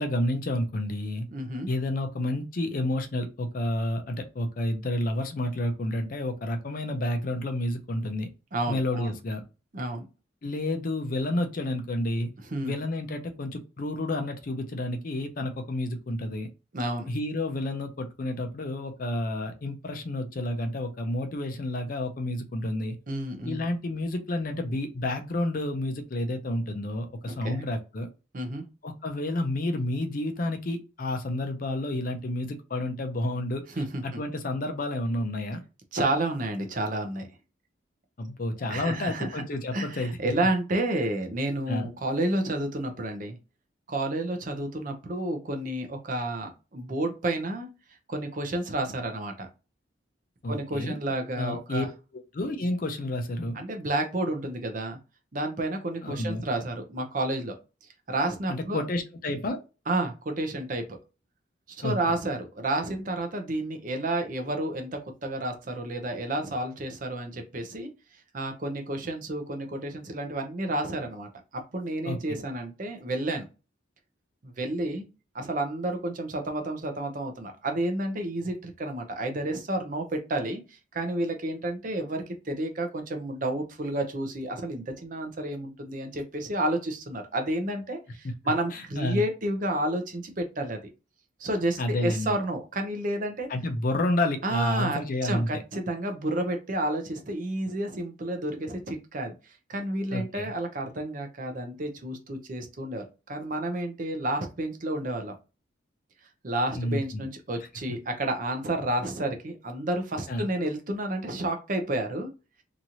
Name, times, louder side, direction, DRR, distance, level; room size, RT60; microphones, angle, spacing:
voice 1, 0.0-1.3 1.7-8.3 8.7-9.4 10.4-12.3 12.6-16.5 17.1-23.0 23.5-28.1 28.8-33.6 34.0-35.6 38.2-40.3 41.7-41.9 50.4-51.0 51.4-51.9 52.3-53.6 56.0-56.4 58.5-59.6 61.8-62.0 72.0-72.2 88.7-89.3 91.8-92.3 93.5-95.6 100.1-100.5 106.7-107.2 110.3-110.5, left 1 dB, 45° left, 5 dB, 0.5 m, -30 dB
voice 2, 1.3-1.7 8.5-9.2 9.7-10.0 12.5-12.8 16.7-17.1 23.1-23.7 27.3-27.6 28.3-28.7 33.8-34.2 35.9-37.3 38.7-39.4 39.7-43.4 43.9-47.7 48.1-49.5 50.5-51.9 53.5-55.0 55.3-57.6 58.1-58.8 59.9-61.0 61.7-67.9 68.3-73.4 74.4-75.1 75.3-90.8 91.4-93.5 94.4-99.3 99.7-105.3 106.4-112.3, right 1 dB, 40° right, 5 dB, 0.6 m, -30 dB
3.0 x 2.5 x 2.7 m, 0.31 s
head